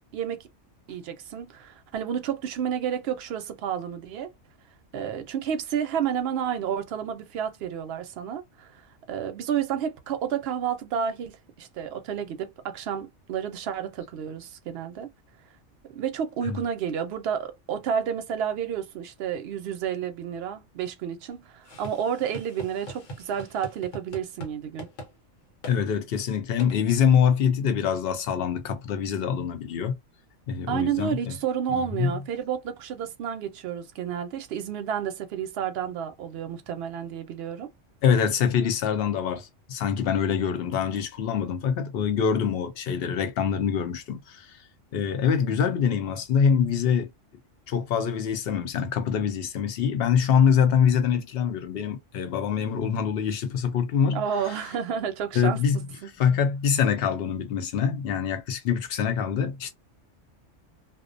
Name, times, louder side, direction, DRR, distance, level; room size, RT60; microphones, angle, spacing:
voice 1, 0.1-0.5 0.9-4.3 4.9-15.1 15.9-24.9 30.7-37.7 54.1-55.6 56.0-56.1, right 8 dB, 65° right, 0.7 m, -30 dB
sound 1, 21.6-24.5 24.8-25.1 25.6-25.8 26.6-26.8, equal, 85° left, 1.2 m, -41 dB
voice 2, 25.7-30.0 30.5-31.4 31.7-32.1 38.0-44.6 44.9-47.1 47.7-54.7 55.3-59.7, left 7 dB, 60° left, 0.7 m, -25 dB
2.4 x 2.1 x 2.4 m
omnidirectional pair, 1.3 m